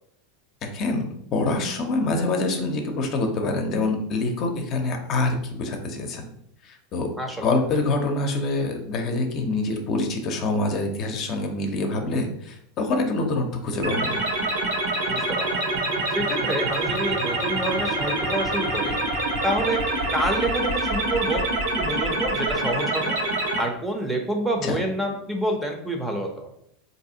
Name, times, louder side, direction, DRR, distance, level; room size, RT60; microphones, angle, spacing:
voice 1, 0.6-6.2 6.6-7.1 7.4-14.2 24.6-24.8, left 2 dB, 45° left, 4 dB, 0.7 m, -25 dB
sound 1, 13.8-23.6, right 2 dB, 75° right, 1.1 m, -26 dB
voice 2, 15.1-15.6 16.1-19.0 19.4-21.4 21.8-23.2 23.4-26.5, right 1 dB, 10° right, 2 dB, 0.8 m, -28 dB
4.0 x 2.7 x 2.8 m, 0.72 s
hypercardioid pair, 100°, 0 cm